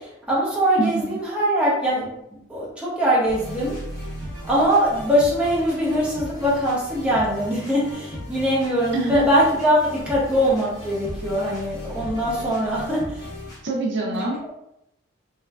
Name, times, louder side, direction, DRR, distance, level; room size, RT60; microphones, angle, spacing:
voice 1, 0.0-2.1 2.5-3.8 4.4-13.3 14.0-14.3, equal, 5° right, -8 dB, 1.0 m, -22 dB
voice 2, 0.8-1.2 8.9-9.3 13.6-14.5, right 2 dB, 55° right, -2 dB, 0.5 m, -25 dB
sound 1, 3.3-13.6, equal, 20° left, 1.4 m, -37 dB
3.5 x 3.1 x 2.4 m, 0.81 s
head